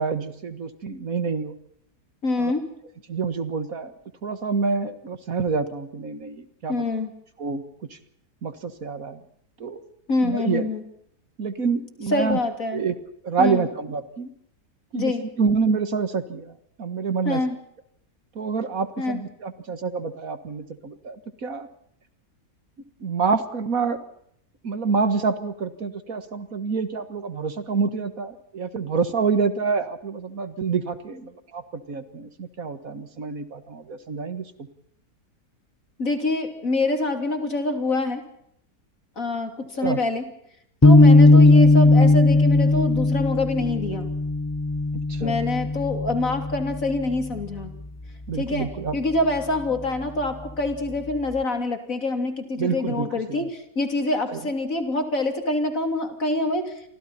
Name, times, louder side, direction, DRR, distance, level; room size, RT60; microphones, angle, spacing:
voice 1, 0.0-1.5 2.4-2.5 3.1-3.9 4.2-6.8 7.4-7.6 7.9-8.0 8.4-9.2 9.6-9.8 10.2-10.7 11.4-12.4 12.7-12.9 13.2-14.3 14.9-17.4 18.4-21.7 23.0-24.0 24.6-34.5 39.8-40.0 41.3-41.7 45.1-45.4 48.3-49.0 52.6-53.5 54.3-54.4, right 5 dB, 55° right, 10 dB, 2.0 m, -27 dB
voice 2, 2.2-2.7 6.7-7.1 10.1-10.8 12.1-12.8 13.4-13.6 14.9-15.2 17.3-17.6 19.0-19.2 36.0-38.2 39.2-40.3 40.8-44.1 45.2-47.7 48.3-56.7, left 2 dB, 55° left, 6 dB, 3.5 m, -25 dB
sound 1, 40.8-47.2, left 2 dB, 15° left, 0.5 m, -17 dB
29.0 x 24.5 x 4.3 m, 0.71 s
omnidirectional pair, 1.8 m